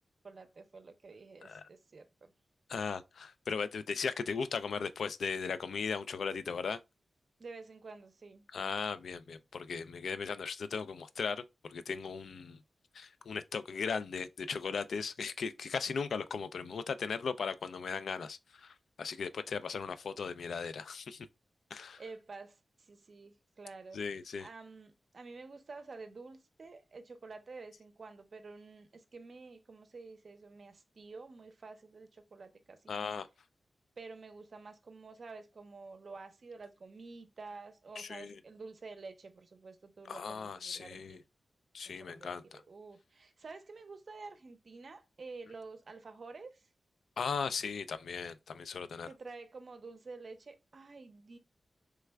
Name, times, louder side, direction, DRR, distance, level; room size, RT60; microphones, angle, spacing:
voice 1, 0.2-2.3 7.4-8.4 22.0-24.0 24.4-33.1 34.0-41.2 41.8-46.7 49.1-51.4, right 3 dB, 45° right, 0.5 m, -50 dB
voice 2, 2.7-6.8 8.5-11.4 11.7-12.6 12.9-21.3 21.7-22.0 23.9-24.5 32.9-33.3 38.0-38.4 40.1-41.2 41.7-42.6 47.2-49.1, left 5 dB, 80° left, 0.3 m, -37 dB
3.3 x 2.2 x 3.3 m
wide cardioid pair, 165°, 0 cm